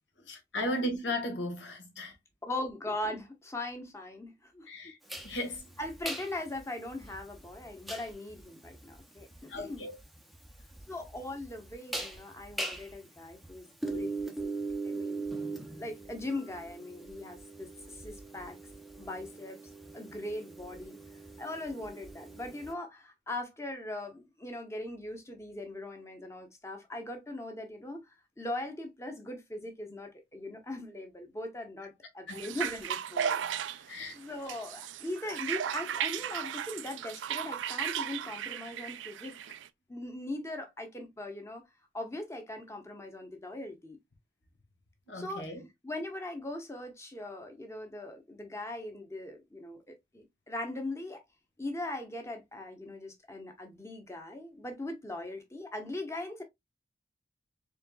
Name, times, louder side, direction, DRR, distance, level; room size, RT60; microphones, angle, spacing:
voice 1, 0.2-2.1 4.7-5.0 5.2-5.6 9.5-10.0 32.3-32.4 33.9-34.2 45.1-45.6, left 1 dB, 80° left, 1.4 m, -35 dB
voice 2, 2.5-4.7 5.8-9.2 9.5-9.8 10.9-14.5 14.8-15.3 15.7-18.6 19.0-19.6 19.9-21.0 21.4-28.0 28.4-33.9 34.1-39.4 39.9-41.6 41.9-44.0 45.1-45.5 45.8-51.2 51.6-56.4, left 1 dB, 15° left, 1.0 m, -40 dB
sound 1, 5.1-22.7, right 3 dB, ahead, 0.6 m, -41 dB
sound 2, 32.3-39.7, right 9 dB, 90° right, 0.4 m, -35 dB
4.4 x 3.7 x 2.3 m
head